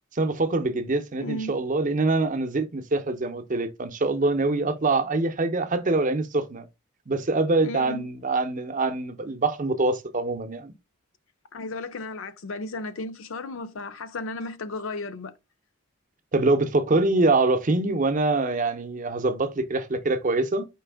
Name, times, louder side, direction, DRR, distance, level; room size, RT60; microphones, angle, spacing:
voice 1, 0.1-6.6 7.1-10.7 16.3-20.7, right 2 dB, 35° right, 0.6 m, -24 dB
voice 2, 1.2-1.6 7.6-8.1 11.5-15.3, left 2 dB, 65° left, 0.5 m, -34 dB
4.6 x 3.3 x 3.4 m
head